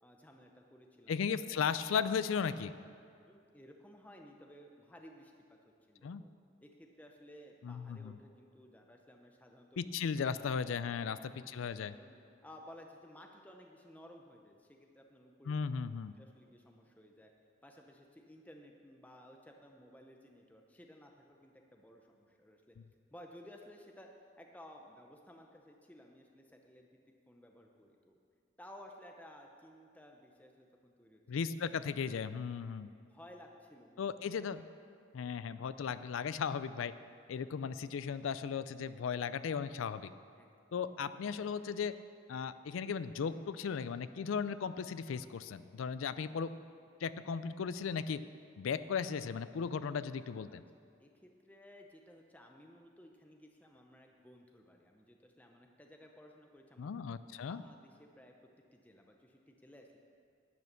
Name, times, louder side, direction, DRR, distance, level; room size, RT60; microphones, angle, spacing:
voice 1, 0.0-1.2 3.2-5.3 5.9-6.3 6.6-9.9 11.6-15.6 16.2-17.3 17.6-22.8 23.1-24.1 24.4-26.9 27.3-28.2 28.6-31.7 32.8-34.5 37.4-37.5 40.4-40.7 50.5-50.6 51.0-57.2 57.5-58.3 58.7-60.0, equal, 10° left, 2 dB, 0.6 m, -57 dB
voice 2, 1.1-2.7 6.0-6.2 7.6-8.2 9.8-11.9 15.5-16.1 31.3-32.9 34.0-34.6 35.1-36.9 37.3-40.1 40.7-42.0 42.3-46.5 47.0-48.2 48.6-50.6 56.8-57.6, left 6 dB, 90° left, 14 dB, 0.4 m, -36 dB
11.0 x 8.6 x 6.7 m, 2.3 s
head